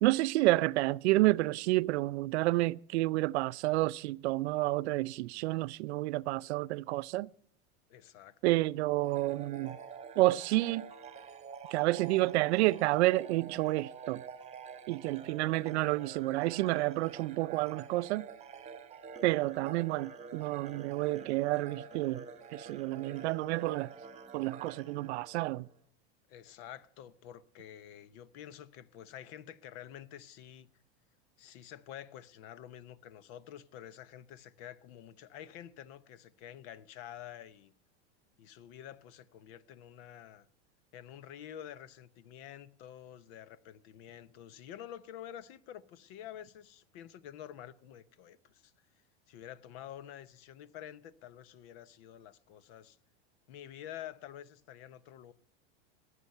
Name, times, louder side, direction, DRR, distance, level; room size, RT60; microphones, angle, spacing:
voice 1, 0.0-7.3 8.4-9.8 10.2-10.9 11.7-14.2 14.9-18.3 19.2-22.2 22.5-23.9 24.3-25.7, right 19 dB, 70° right, 0.5 m, -29 dB
voice 2, 7.9-8.4 26.3-30.7 31.4-37.7 38.4-40.5 40.9-48.7 49.3-53.0 53.5-55.3, left 10 dB, 55° left, 1.0 m, -49 dB
sound 1, 9.0-25.8, right 6 dB, 20° right, 1.4 m, -48 dB
21.0 x 8.3 x 5.6 m
supercardioid pair, 125°, 35 cm